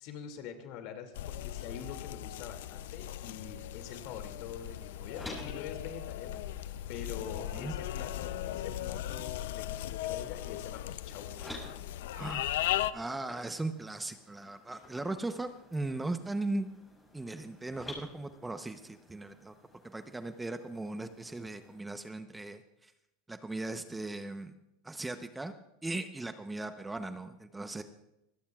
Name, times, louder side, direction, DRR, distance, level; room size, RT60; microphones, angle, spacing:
voice 1, 0.0-11.5, left 7 dB, 60° left, 6 dB, 2.4 m, -45 dB
sound 1, 1.1-12.9, left 13 dB, 75° left, 0.5 m, -37 dB
sound 2, 3.7-21.8, left 1 dB, 10° left, 6.7 m, -53 dB
voice 2, 7.4-7.7 12.1-12.5 12.9-16.7 17.1-19.5 19.8-22.9 23.3-24.5 24.8-25.5 25.8-27.8, right 2 dB, 10° right, 9 dB, 0.8 m, -38 dB
25.0 x 17.0 x 2.4 m, 0.87 s
hypercardioid pair, 105°, 0 cm